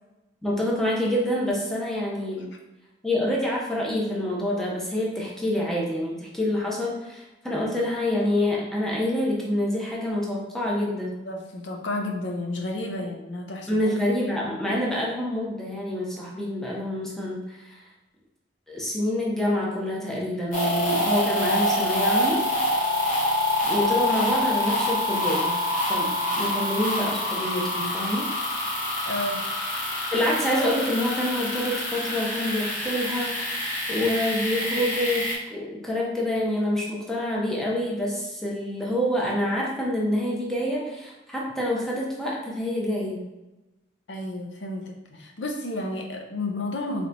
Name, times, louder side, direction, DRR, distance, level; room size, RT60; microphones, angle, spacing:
voice 1, 0.4-2.5 3.0-11.1 13.7-17.8 18.7-22.4 23.6-25.6 25.9-28.3 30.1-43.2, left 1 dB, ahead, -4 dB, 0.8 m, -27 dB
voice 2, 11.0-13.8 29.1-29.4 44.1-47.1, left 2 dB, 80° left, 2 dB, 0.6 m, -31 dB
sound 1, 20.5-35.3, left 1 dB, 50° left, 1.4 m, -26 dB
3.3 x 2.9 x 3.8 m, 1.0 s
head